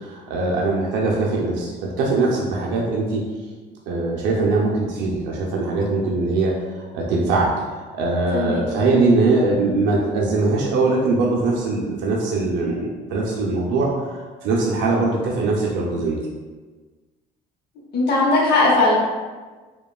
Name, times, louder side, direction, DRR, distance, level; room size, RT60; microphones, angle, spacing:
voice 1, 0.0-3.2 3.9-16.2, right 3 dB, 80° right, -3 dB, 0.4 m, -21 dB
voice 2, 8.3-8.6 17.9-18.9, left 2 dB, 60° left, -3 dB, 0.8 m, -18 dB
2.9 x 2.2 x 2.3 m, 1.4 s
supercardioid pair, 85°, 19 cm